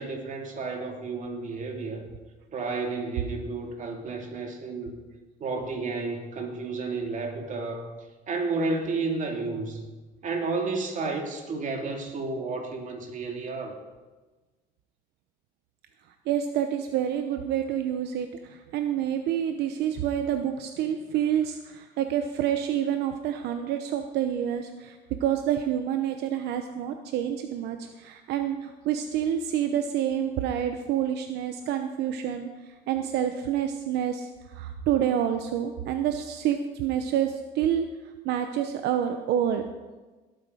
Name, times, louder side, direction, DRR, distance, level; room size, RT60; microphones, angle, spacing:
voice 1, 0.0-2.1 2.5-4.9 5.4-7.9 8.3-9.8 10.2-13.8, right 3 dB, 50° right, 3 dB, 2.6 m, -31 dB
voice 2, 16.3-37.9 38.2-39.7, right 10 dB, 80° right, 7 dB, 0.9 m, -28 dB
18.0 x 8.8 x 5.0 m, 1.3 s
cardioid pair, 110°, 17 cm